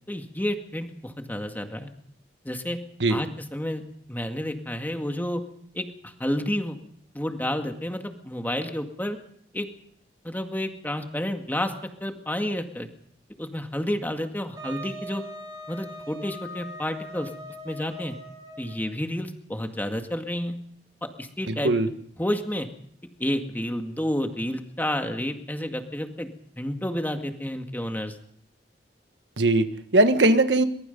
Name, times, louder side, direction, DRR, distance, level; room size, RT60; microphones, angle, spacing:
voice 1, 0.1-1.9 2.4-2.8 3.1-3.8 4.1-5.4 5.7-6.8 7.1-9.2 9.5-9.7 10.2-11.7 12.0-12.9 13.4-15.2 15.7-17.3 17.6-18.2 18.6-20.6 21.0-21.7 22.2-22.7 23.2-26.3 26.6-28.1, left 1 dB, 10° left, 5 dB, 2.0 m, -30 dB
Wind instrument woodwind instrument, 14.6-18.9, equal, 25° right, 7.1 m, -41 dB
voice 2, 21.5-21.9 29.4-30.6, right 2 dB, 90° right, 9 dB, 1.5 m, -20 dB
23.0 x 21.5 x 5.4 m, 0.66 s
head